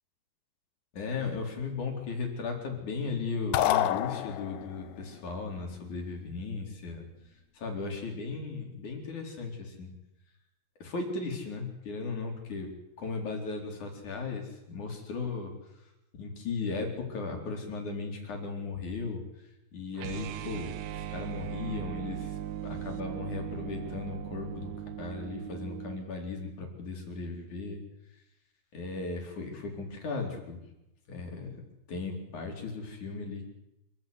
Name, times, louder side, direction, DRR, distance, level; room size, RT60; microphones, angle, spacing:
voice 1, 0.9-7.1 7.5-9.9 10.8-12.7 13.0-15.5 16.2-19.2 19.7-22.4 22.6-24.7 25.0-27.8 28.7-30.6 31.1-31.6 31.9-33.5, left 4 dB, 50° left, 2 dB, 5.5 m, -36 dB
sound 1, 3.5-4.8, left 13 dB, 75° left, 2.8 m, -27 dB
sound 2, 19.9-26.0, right 11 dB, 80° right, 3.0 m, -39 dB
27.5 x 15.0 x 9.6 m, 0.91 s
omnidirectional pair, 4.6 m